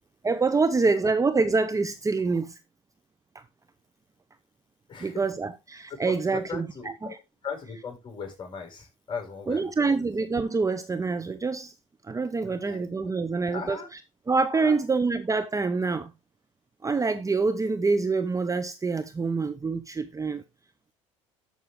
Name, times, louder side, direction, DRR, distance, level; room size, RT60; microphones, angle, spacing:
voice 1, 0.2-2.6 3.3-3.4 5.0-6.7 7.0-7.2 9.5-11.7 12.0-14.0 14.3-16.1 16.8-20.4, right 4 dB, 20° right, 0.9 m, -26 dB
voice 2, 4.9-5.2 6.0-7.2 7.4-9.7 12.4-13.1 13.5-13.9 14.5-14.8, left 5 dB, 30° left, 6.4 m, -38 dB
13.0 x 6.2 x 3.7 m
hypercardioid pair, 75°, 16 cm